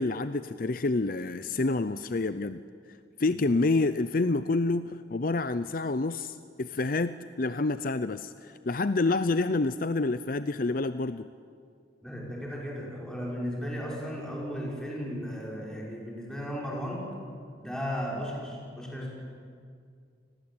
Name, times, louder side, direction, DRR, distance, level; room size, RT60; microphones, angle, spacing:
voice 1, 0.0-2.6 3.2-11.3, left 3 dB, 50° left, 12 dB, 0.6 m, -28 dB
voice 2, 12.0-17.1 17.6-19.1, equal, 5° left, -3 dB, 6.0 m, -35 dB
29.5 x 20.5 x 8.9 m, 2.2 s
head